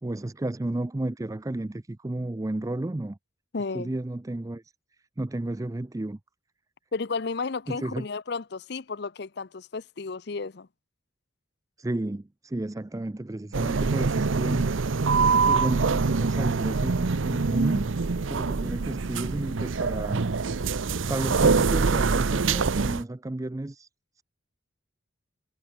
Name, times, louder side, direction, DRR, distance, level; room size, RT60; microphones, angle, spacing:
voice 1, 0.0-3.2 3.7-4.6 5.2-6.2 7.7-8.1 11.8-14.7 15.4-17.9 18.3-20.3 21.1-23.9 24.2-24.3, right 1 dB, 15° right, 0.4 m, -32 dB
voice 2, 3.5-3.9 6.9-10.7, left 4 dB, 55° left, 0.6 m, -33 dB
sound 1, 13.5-23.0, right 4 dB, 75° right, 0.7 m, -24 dB
head